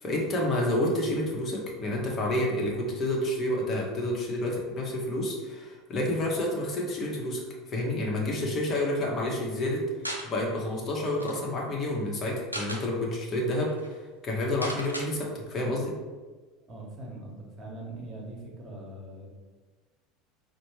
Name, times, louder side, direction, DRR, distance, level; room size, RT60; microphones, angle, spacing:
voice 1, 0.0-7.4 7.7-9.8 10.2-14.0 14.2-16.0, left 1 dB, 35° left, -2 dB, 0.9 m, -29 dB
sound 1, 10.0-10.3 10.8-10.9 11.1-11.4 12.3-12.8 13.4-13.5 13.7-13.9 14.6-15.1, equal, 90° right, 0.4 m, -36 dB
voice 2, 16.7-19.3, right 1 dB, 30° right, -1 dB, 1.1 m, -42 dB
5.2 x 2.1 x 3.1 m, 1.3 s
figure-of-eight pair, 70°, 0 cm